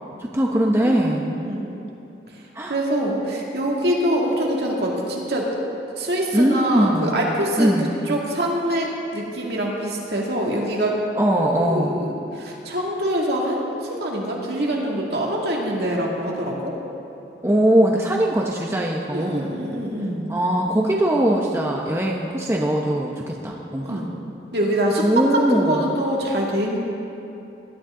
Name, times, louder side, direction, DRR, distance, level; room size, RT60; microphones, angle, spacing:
voice 1, 0.2-1.4 2.5-2.7 6.3-7.2 7.6-8.0 11.1-12.1 17.4-19.5 20.3-24.0 25.0-26.0, right 1 dB, 15° right, -1 dB, 0.8 m, -21 dB
voice 2, 0.8-1.7 2.3-2.4 2.7-5.5 6.0-7.7 8.1-11.0 11.6-16.8 19.1-20.3 23.8-24.1 24.5-25.0 25.3-26.8, right 1 dB, 60° right, -2 dB, 2.4 m, -24 dB
20.5 x 12.0 x 3.8 m, 2.8 s
head